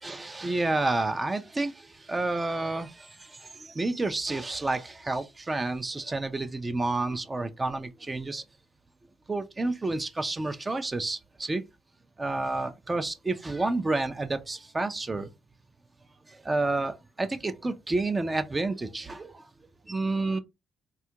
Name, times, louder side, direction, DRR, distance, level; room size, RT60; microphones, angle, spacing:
voice 1, 0.0-8.4 9.3-11.6 12.2-15.3 16.3-19.5 19.9-20.4, right 2 dB, 25° right, 0.4 m, -30 dB
3.4 x 2.3 x 2.8 m
cardioid pair, 90°, 0 cm